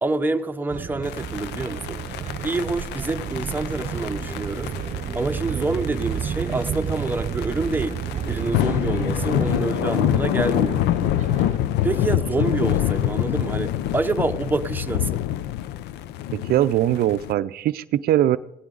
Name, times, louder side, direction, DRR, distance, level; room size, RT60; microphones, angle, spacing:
voice 1, 0.0-2.0 2.4-4.7 5.1-8.0 8.3-10.8 11.8-15.2, right 3 dB, 10° right, 7 dB, 0.8 m, -27 dB
sound 1, 0.7-11.6, right 8 dB, 45° right, 0.9 m, -31 dB
sound 2, 1.0-17.3, left 12 dB, 85° left, 0.6 m, -26 dB
sound 3, 3.8-13.8, left 1 dB, 20° left, 6.8 m, -44 dB
voice 2, 16.3-18.4, right 12 dB, 65° right, 13 dB, 0.5 m, -21 dB
17.0 x 16.0 x 3.9 m, 0.83 s
cardioid pair, 110°, 17 cm